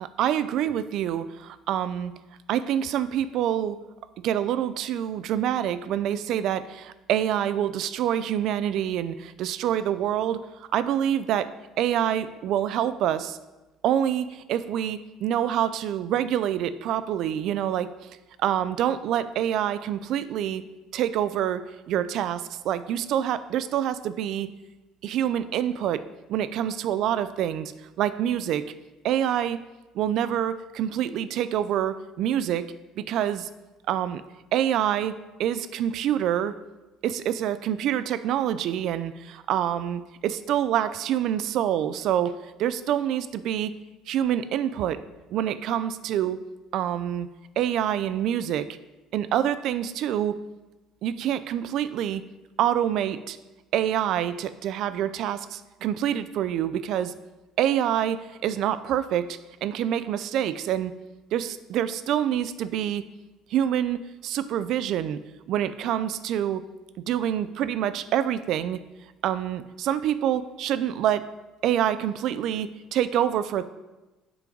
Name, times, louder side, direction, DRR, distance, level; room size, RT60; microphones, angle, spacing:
voice 1, 0.0-2.1 2.5-3.8 4.2-13.4 13.8-17.9 18.4-20.6 20.9-24.5 25.0-26.0 26.3-27.7 28.0-28.7 29.0-29.6 29.9-33.5 33.9-34.2 34.5-36.6 37.0-43.7 44.1-45.0 45.3-46.4 46.7-47.3 47.6-48.7 49.1-50.4 51.0-52.2 52.6-53.4 53.7-57.1 57.6-60.9 61.3-63.0 63.5-65.2 65.5-66.6 67.0-68.8 69.2-71.2 71.6-73.6, right 10 dB, 60° right, 14 dB, 0.4 m, -26 dB
7.5 x 5.1 x 3.8 m, 1.1 s
cardioid pair, 140°, 0 cm